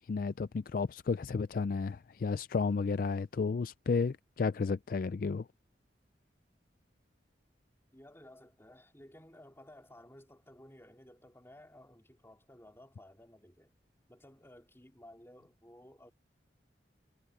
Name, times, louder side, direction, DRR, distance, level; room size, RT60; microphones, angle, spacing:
voice 1, 0.0-5.5, left 4 dB, 50° left, 0.4 m, -32 dB
voice 2, 7.9-13.7 14.1-16.1, left 1 dB, 15° left, 3.9 m, -56 dB
head